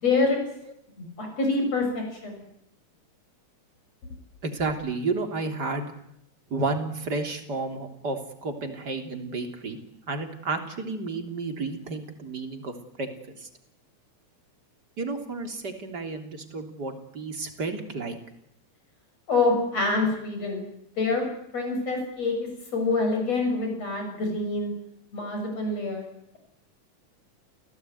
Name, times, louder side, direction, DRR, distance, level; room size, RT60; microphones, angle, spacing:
voice 1, 0.0-0.4 1.0-2.4 19.3-20.6 21.0-21.2 21.5-24.7 25.1-26.1, left 3 dB, 60° left, 3 dB, 7.8 m, -26 dB
voice 2, 4.4-5.9 6.5-9.8 10.1-13.5 15.0-18.2, right 3 dB, 35° right, 5 dB, 3.7 m, -31 dB
30.0 x 18.0 x 9.5 m, 0.77 s
omnidirectional pair, 3.4 m